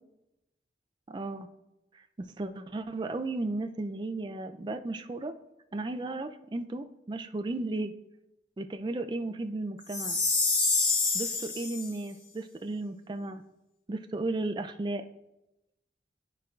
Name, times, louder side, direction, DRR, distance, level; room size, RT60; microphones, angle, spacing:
voice 1, 1.1-1.5 1.9-5.3 5.7-7.9 8.6-10.2 11.1-13.4 13.9-15.0, right 2 dB, 25° right, 7 dB, 0.3 m, -34 dB
Chime, 9.9-11.9, left 3 dB, 85° left, 1.4 m, -27 dB
11.5 x 4.5 x 2.4 m, 0.94 s
head